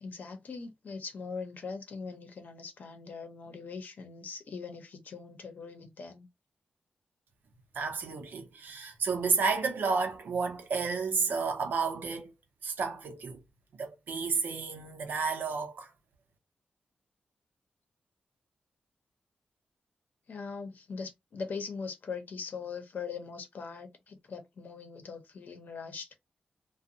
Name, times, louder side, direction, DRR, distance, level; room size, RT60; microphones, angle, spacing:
voice 1, 0.0-6.3 20.3-26.1, left 5 dB, 60° left, 0.7 m, -41 dB
voice 2, 7.7-12.3 12.6-13.4 13.8-15.9, right 5 dB, 80° right, 0.7 m, -31 dB
2.5 x 2.2 x 2.7 m
wide cardioid pair, 135°, 3 cm